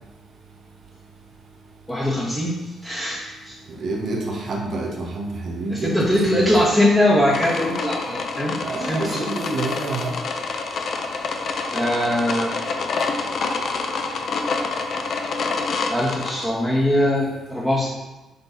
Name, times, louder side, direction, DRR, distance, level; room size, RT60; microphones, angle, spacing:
voice 1, 1.9-3.5 5.8-9.2 11.7-12.6 15.9-17.9, left 1 dB, 10° left, -9 dB, 1.7 m, -21 dB
voice 2, 3.8-5.9 6.3-6.6 8.6-10.1, right 2 dB, 55° right, -1 dB, 1.2 m, -27 dB
sound 1, 7.3-16.4, left 4 dB, 60° left, 0.7 m, -27 dB
6.8 x 3.9 x 4.1 m, 1.1 s
cardioid pair, 90°, 0 cm